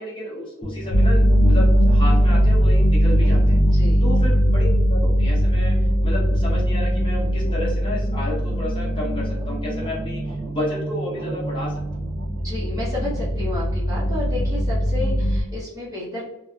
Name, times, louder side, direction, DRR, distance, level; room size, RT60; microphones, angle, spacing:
voice 1, 0.0-3.6 4.0-5.7 6.0-12.1, left 1 dB, 25° left, -6 dB, 0.9 m, -31 dB
sound 1, 0.6-15.3, right 1 dB, ahead, 0.5 m, -32 dB
sound 2, 0.9-10.6 11.5-15.4, equal, 80° left, 0.5 m, -20 dB
voice 2, 3.6-4.1 12.3-16.2, left 2 dB, 15° right, -9 dB, 1.0 m, -32 dB
2.7 x 2.3 x 2.3 m, 0.91 s
head